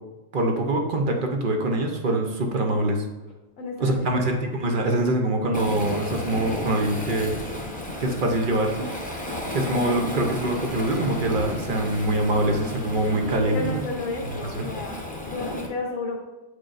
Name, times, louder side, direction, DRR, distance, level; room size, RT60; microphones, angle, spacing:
voice 1, 0.3-3.1 3.8-7.3 8.0-8.9 9.5-13.8 14.4-14.7, right 1 dB, 45° right, 3 dB, 0.8 m, -24 dB
voice 2, 3.6-4.4 13.4-16.2, left 2 dB, 80° left, 0 dB, 1.2 m, -32 dB
Waves surf, 5.5-15.7, left 1 dB, 10° left, 0.7 m, -33 dB
8.6 x 4.7 x 2.5 m, 1.1 s
omnidirectional pair, 1.4 m